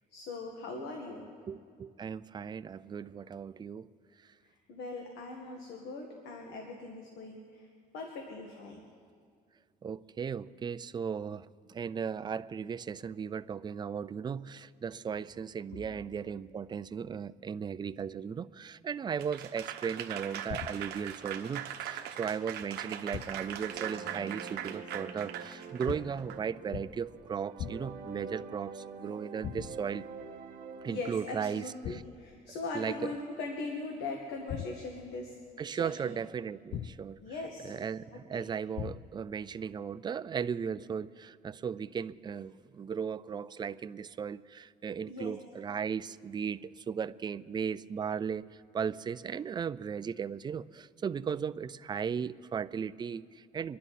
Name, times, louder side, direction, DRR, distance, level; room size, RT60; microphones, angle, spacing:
voice 1, 0.1-1.3 4.7-7.7 7.9-8.8 30.9-35.4 35.7-36.0 37.2-37.7 38.3-38.5 45.1-45.3, left 3 dB, 75° left, 1 dB, 1.8 m, -40 dB
voice 2, 1.5-3.9 9.8-30.1 30.8-32.0 32.7-33.2 35.6-37.2 37.6-48.4 48.7-53.8, right 7 dB, 25° right, 16 dB, 0.4 m, -36 dB
Applause / Crowd, 19.2-26.4, right 10 dB, 75° right, 1.1 m, -40 dB
sound 1, 20.5-21.1 23.1-23.6 25.9-26.3 26.7-27.2 27.6-28.1 29.4-30.0 31.8-32.3 34.5-35.1 36.7-37.3 38.8-39.3, left 9 dB, 50° left, 0.5 m, -41 dB
sound 2, 23.2-31.1, right 5 dB, 55° right, 1.9 m, -46 dB
25.5 x 11.0 x 4.2 m, 2.1 s
cardioid pair, 110°, 17 cm